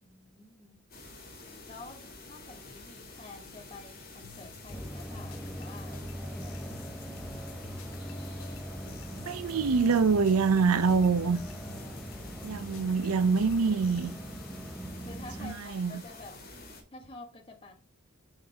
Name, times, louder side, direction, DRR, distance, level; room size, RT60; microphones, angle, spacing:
voice 1, 0.0-0.8 1.6-6.9 15.0-16.4 16.9-17.7, left 2 dB, 25° left, 0.9 m, -49 dB
sound 1, 0.9-16.8, left 2 dB, 40° left, 1.7 m, -49 dB
over tape, 4.2-14.1, left 3 dB, 75° left, 0.7 m, -51 dB
sound 2, 4.7-15.5, right 1 dB, ahead, 0.4 m, -41 dB
voice 2, 9.2-11.4 12.4-14.1 15.4-15.9, right 5 dB, 85° right, 0.5 m, -25 dB
5.5 x 3.9 x 4.5 m
head